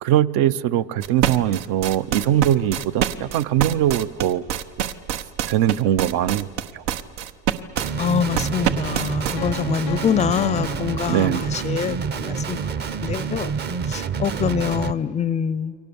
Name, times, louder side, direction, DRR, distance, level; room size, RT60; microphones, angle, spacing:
voice 1, 0.0-4.4 5.5-6.5 6.7-6.8 11.1-11.4, right 11 dB, 65° right, 15 dB, 0.8 m, -21 dB
sound 1, 1.0-9.3, right 10 dB, 85° right, 1.2 m, -25 dB
Guitar, 7.8-14.9, right 6 dB, 30° right, 0.8 m, -27 dB
voice 2, 8.0-12.7 13.0-13.5 13.9-15.7, left 8 dB, 20° left, 19 dB, 0.5 m, -25 dB
Piano, 9.4-12.1, left 20 dB, 80° left, 0.5 m, -38 dB
29.0 x 23.5 x 7.0 m, 2.3 s
cardioid pair, 140°, 35 cm